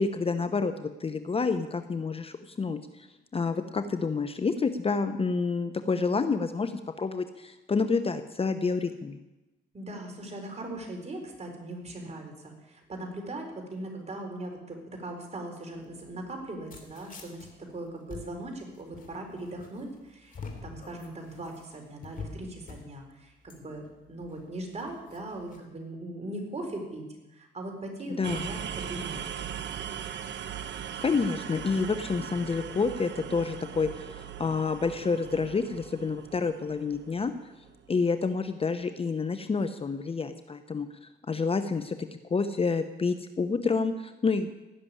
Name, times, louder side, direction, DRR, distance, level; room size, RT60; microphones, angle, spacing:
voice 1, 0.0-3.1 3.3-6.7 7.0-9.2 28.2-28.5 31.0-37.3 37.9-42.0 42.3-44.5, left 4 dB, 30° left, 9 dB, 0.9 m, -28 dB
voice 2, 9.7-23.8 24.1-27.0 27.3-29.2, right 1 dB, 35° right, 2 dB, 4.2 m, -39 dB
sound 1, 15.7-25.6, left 4 dB, 45° left, 3.1 m, -47 dB
sound 2, 28.2-38.0, right 8 dB, 65° right, 1.2 m, -39 dB
16.5 x 6.8 x 10.0 m, 1.0 s
cardioid pair, 90°, 20 cm